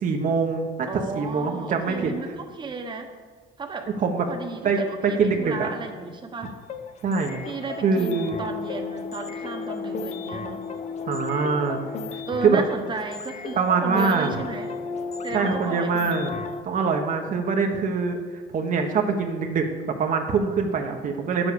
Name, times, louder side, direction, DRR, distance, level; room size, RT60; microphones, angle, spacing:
voice 1, 0.0-2.1 4.0-4.3 4.6-5.7 7.0-7.4 7.8-8.4 11.1-11.8 12.1-12.6 13.6-14.4 15.3-16.3 16.6-21.5, right 5 dB, 50° right, 3 dB, 1.2 m, -24 dB
voice 2, 0.9-3.1 3.6-3.9 4.3-6.5 7.5-10.7 12.3-14.7 15.2-16.3, right 4 dB, 30° right, 4 dB, 1.2 m, -34 dB
sound 1, 6.4-16.6, left 5 dB, 40° left, 0.9 m, -34 dB
9.5 x 7.2 x 7.0 m, 1.5 s
cardioid pair, 110°, 17 cm